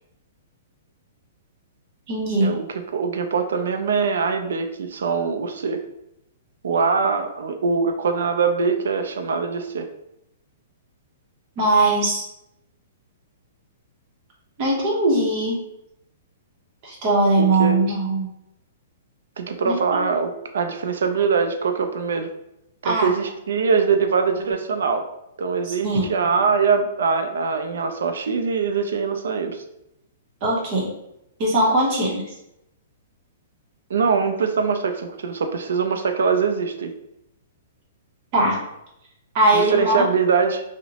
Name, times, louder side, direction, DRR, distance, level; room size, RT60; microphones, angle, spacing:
voice 1, 2.1-2.5 11.6-12.2 14.6-15.6 16.8-18.3 19.6-20.0 22.8-23.1 25.6-26.1 30.4-30.9 31.4-32.3 38.3-38.6 39.3-40.1, right 2 dB, 30° right, -4 dB, 0.7 m, -20 dB
voice 2, 2.9-5.8 6.6-9.9 17.4-17.8 19.4-22.3 22.8-25.0 25.4-29.6 33.9-36.9 39.5-40.6, right 5 dB, 80° right, 6 dB, 0.4 m, -22 dB
2.8 x 2.0 x 2.7 m, 0.83 s
hypercardioid pair, 170°, 0 cm